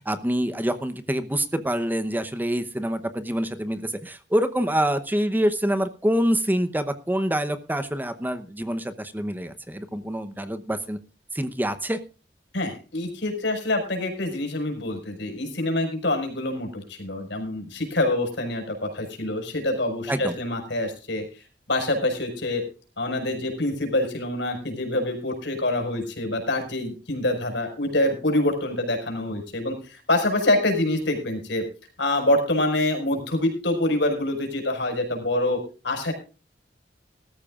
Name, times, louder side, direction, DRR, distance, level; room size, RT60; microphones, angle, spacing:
voice 1, 0.0-11.0 11.3-12.0 20.1-20.3, equal, 10° right, 10 dB, 0.9 m, -26 dB
voice 2, 12.5-21.2 21.7-22.6 23.0-31.6 32.0-36.1, left 1 dB, 75° left, 4 dB, 5.3 m, -26 dB
20.0 x 13.5 x 2.4 m, 0.33 s
head